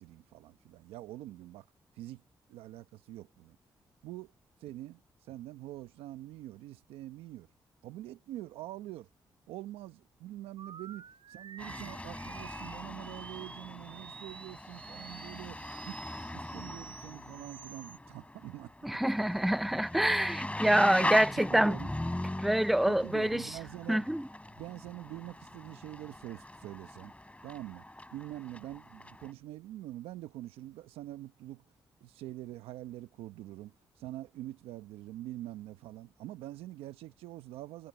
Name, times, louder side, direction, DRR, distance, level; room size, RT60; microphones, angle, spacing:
voice 1, 0.0-1.6 2.0-2.2 2.5-3.6 4.0-4.3 4.6-7.5 7.8-9.1 9.5-16.0 16.3-18.7 21.0-21.9 22.9-24.1 24.6-27.1 27.4-27.8 28.1-31.6 32.0-37.9, right 15 dB, 90° right, 1.0 m, -45 dB
sound 1, 10.6-18.0, right 6 dB, 60° right, 6.2 m, -50 dB
sound 2, 11.6-29.3, left 1 dB, 15° left, 5.2 m, -41 dB
voice 2, 18.8-21.8 22.4-23.5 23.9-24.3, right 1 dB, ahead, 0.6 m, -26 dB
supercardioid pair, 45°, 10 cm